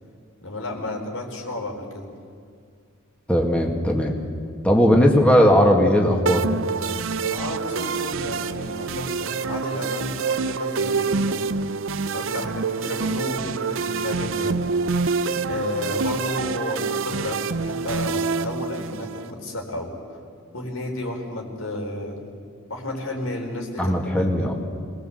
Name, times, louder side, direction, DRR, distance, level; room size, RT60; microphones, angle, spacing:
voice 1, 0.4-2.1 4.7-4.9 7.2-11.5 12.1-14.6 15.4-20.2 20.5-22.2 22.7-24.5, left 1 dB, 75° left, 1 dB, 4.5 m, -32 dB
voice 2, 3.3-4.2 4.6-6.5 23.8-24.5, equal, 5° left, 0 dB, 2.0 m, -18 dB
sound 1, 6.3-19.3, right 5 dB, 65° right, 0.6 m, -26 dB
26.5 x 19.5 x 8.0 m, 2.2 s
head